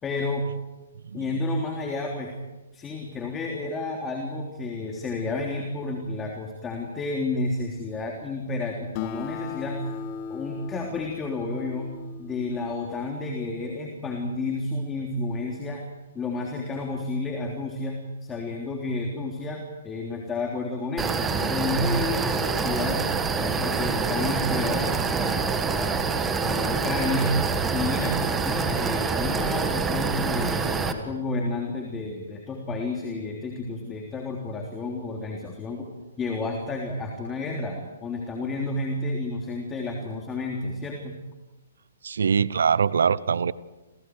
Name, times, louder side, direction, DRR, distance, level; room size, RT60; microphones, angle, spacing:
voice 1, 0.0-0.5 1.1-2.3 2.7-9.9 10.3-11.9 12.2-15.8 16.1-23.0 23.4-27.3 27.7-35.9 36.2-41.2, left 2 dB, 15° left, 1 dB, 3.4 m, -31 dB
Acoustic guitar, 8.9-13.8, left 6 dB, 35° left, 2.2 m, -38 dB
sound 1, 21.0-30.9, right 5 dB, 15° right, 2.0 m, -26 dB
voice 2, 42.0-43.5, right 6 dB, 70° right, 20 dB, 0.9 m, -22 dB
29.5 x 28.0 x 4.8 m, 1.1 s
figure-of-eight pair, 130°, 0 cm